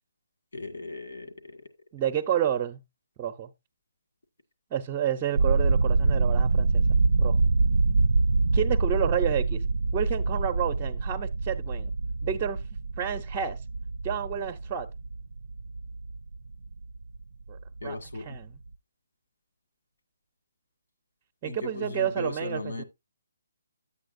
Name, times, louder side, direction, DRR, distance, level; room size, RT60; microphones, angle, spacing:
voice 1, 0.5-1.6 17.8-18.4 21.4-22.8, left 2 dB, 80° left, 1.8 m, -37 dB
voice 2, 1.9-2.8 3.2-3.5 4.7-7.4 8.5-9.6 9.9-11.9 12.2-12.6 13.0-13.6 14.0-14.9 17.5-18.6 21.4-22.8, right 9 dB, 20° right, 0.6 m, -30 dB
sound 1, 5.4-17.2 17.5-17.9 18.2-18.4, right 3 dB, 80° right, 0.4 m, -25 dB
10.0 x 8.3 x 2.5 m
hypercardioid pair, 160°, 0 cm